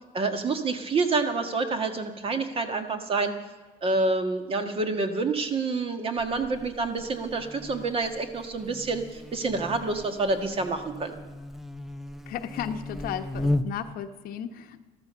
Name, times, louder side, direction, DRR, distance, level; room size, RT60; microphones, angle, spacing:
voice 1, 0.1-3.4 3.8-11.2, right 3 dB, 35° right, 7 dB, 1.6 m, -28 dB
Buzz, 6.2-14.0, left 1 dB, ahead, 0.6 m, -36 dB
voice 2, 12.3-14.8, left 9 dB, 60° left, 8 dB, 1.1 m, -34 dB
14.0 x 13.0 x 6.9 m, 1.3 s
cardioid pair, 125°, 17 cm